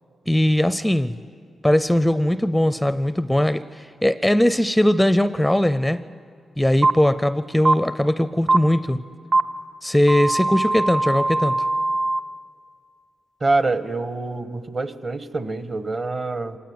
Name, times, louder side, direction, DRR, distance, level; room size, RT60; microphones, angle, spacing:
voice 1, 0.3-1.2 1.6-6.0 6.6-9.0 9.8-11.6, left 1 dB, 5° left, 14 dB, 0.5 m, -20 dB
sound 1, 6.8-6.9 7.7-7.8 8.5-8.6 9.3-9.4 10.1-12.2, right 2 dB, 60° right, 0.9 m, -20 dB
voice 2, 13.4-16.6, right 3 dB, 40° right, 11 dB, 1.3 m, -25 dB
25.5 x 18.5 x 9.6 m, 2.2 s
cardioid pair, 80°, 0 cm